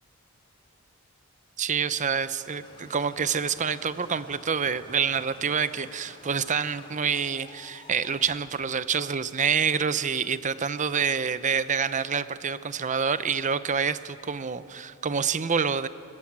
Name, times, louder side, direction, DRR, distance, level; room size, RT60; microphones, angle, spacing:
voice 1, 1.6-15.9, right 6 dB, 35° right, 14 dB, 0.7 m, -27 dB
sound 1, 2.2-8.8, left 1 dB, 25° left, 4.8 m, -51 dB
22.0 x 19.5 x 8.8 m, 2.6 s
head